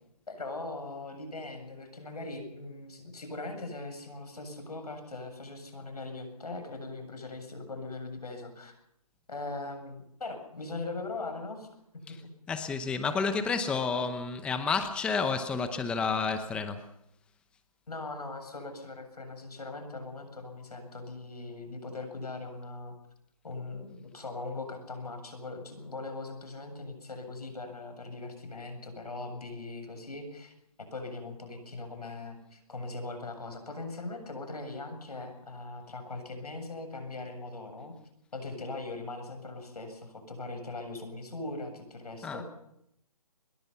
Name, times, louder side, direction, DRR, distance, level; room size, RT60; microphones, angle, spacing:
voice 1, 0.3-8.8 9.3-11.7 17.9-22.9 23.4-37.9 38.3-42.4, left 3 dB, 85° left, 6 dB, 7.8 m, -40 dB
voice 2, 12.5-16.9 42.2-42.4, left 5 dB, 5° left, 9 dB, 0.8 m, -30 dB
24.0 x 21.5 x 5.7 m, 0.77 s
hypercardioid pair, 155°, 19 cm